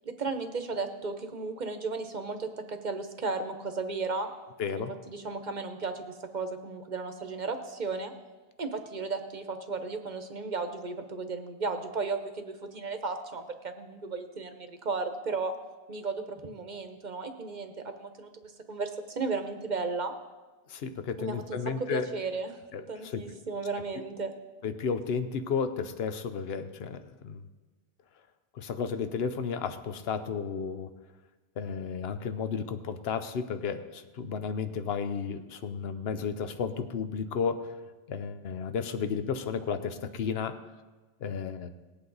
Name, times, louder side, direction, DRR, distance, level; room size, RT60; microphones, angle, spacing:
voice 1, 0.2-4.3 4.7-8.1 8.6-15.5 15.9-20.1 21.2-21.6 21.9-22.6 22.9-24.3, right 4 dB, 45° right, 6 dB, 1.0 m, -35 dB
voice 2, 4.6-4.9 20.7-22.1 22.7-23.2 24.6-27.4 28.6-30.9 31.6-37.7 38.1-40.6 41.2-41.7, left 6 dB, 70° left, 10 dB, 1.0 m, -33 dB
19.0 x 8.5 x 4.0 m, 1.2 s
omnidirectional pair, 1.1 m